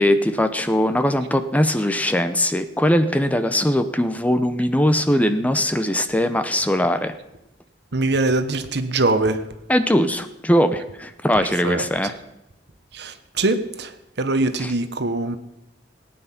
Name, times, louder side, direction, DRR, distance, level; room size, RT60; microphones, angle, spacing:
voice 1, 0.0-7.1 9.7-12.2 14.6-14.7, equal, 10° left, 10 dB, 0.7 m, -20 dB
voice 2, 7.9-9.4 11.6-11.8 12.9-13.9 14.2-15.4, right 2 dB, 65° right, 10 dB, 1.1 m, -22 dB
18.0 x 9.6 x 5.9 m, 0.90 s
head